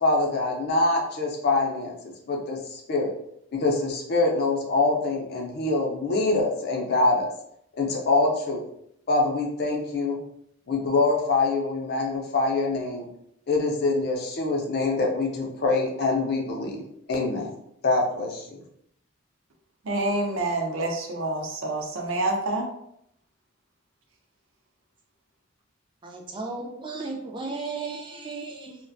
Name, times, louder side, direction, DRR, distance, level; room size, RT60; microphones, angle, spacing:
voice 1, 0.0-3.1 3.5-7.3 7.8-8.6 9.1-10.2 10.7-13.1 13.5-16.8 17.1-17.5 17.8-18.5, left 3 dB, 50° left, 0 dB, 0.5 m, -24 dB
voice 2, 19.8-22.7, right 2 dB, 70° right, 1 dB, 0.5 m, -27 dB
voice 3, 26.0-28.8, right 3 dB, 25° right, 1 dB, 0.3 m, -35 dB
2.4 x 2.1 x 2.5 m, 0.73 s
head